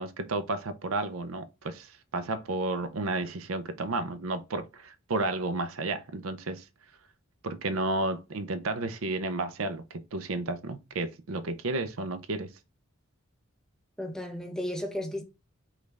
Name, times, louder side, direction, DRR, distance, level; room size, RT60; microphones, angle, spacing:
voice 1, 0.0-6.6 7.4-12.5, right 2 dB, 80° right, 0.6 m, -32 dB
voice 2, 14.0-15.2, left 1 dB, 5° left, 0.8 m, -34 dB
5.2 x 2.5 x 3.3 m
head